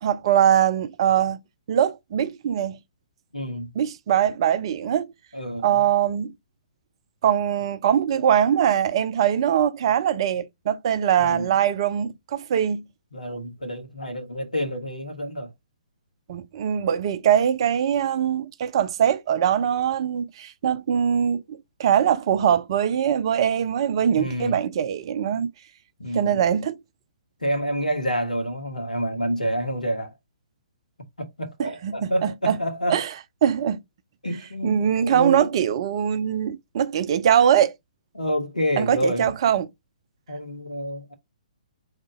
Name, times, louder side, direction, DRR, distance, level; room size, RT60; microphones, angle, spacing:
voice 1, 0.0-1.4 1.7-2.8 3.7-5.1 5.6-6.3 7.2-12.8 16.3-25.5 26.1-26.8 31.6-32.6 32.9-33.1 33.4-33.8 34.6-37.7 38.8-39.7, right 9 dB, 40° right, 0.5 m, -22 dB
voice 2, 3.3-3.7 5.3-5.8 11.2-11.6 13.1-15.5 24.1-24.6 26.0-26.4 27.4-30.1 31.2-33.0 34.2-35.5 38.1-39.3 40.3-41.1, equal, 85° left, 1.5 m, -28 dB
3.8 x 3.7 x 3.6 m
figure-of-eight pair, 125°, 4 cm